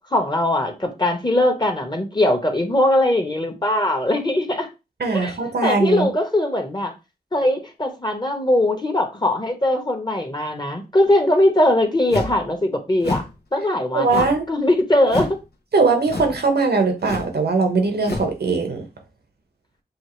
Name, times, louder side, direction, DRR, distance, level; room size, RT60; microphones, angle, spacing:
voice 1, 0.1-4.7 5.1-6.9 7.3-13.2 13.5-15.4, left 1 dB, 25° left, 1.2 m, -20 dB
voice 2, 5.0-6.1 13.9-14.4 15.7-18.8, right 4 dB, 90° right, 1.1 m, -20 dB
sound 1, 12.1-12.4 13.0-13.3 14.1-14.5 15.1-15.4 16.1-16.4 17.0-17.4 18.0-18.3, left 2 dB, 85° left, 1.0 m, -29 dB
6.3 x 2.5 x 3.1 m
cardioid pair, 50°, 16 cm